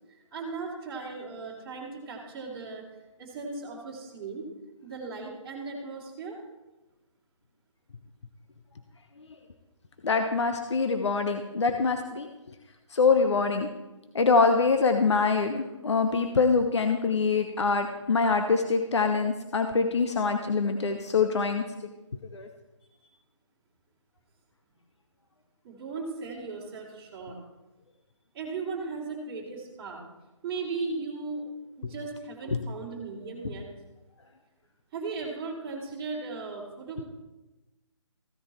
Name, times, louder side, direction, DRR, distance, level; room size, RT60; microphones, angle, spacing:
voice 1, 0.3-2.8 3.2-4.4 4.8-6.4 25.6-27.3 28.3-30.0 30.4-31.5 31.8-33.6 34.9-37.0, right 4 dB, 15° right, -5 dB, 3.2 m, -37 dB
voice 2, 10.0-12.3 12.9-13.7 14.1-21.6 22.3-22.5 32.5-32.6, left 4 dB, 60° left, 6 dB, 1.1 m, -24 dB
15.5 x 10.5 x 4.3 m, 1.0 s
figure-of-eight pair, 150°, 17 cm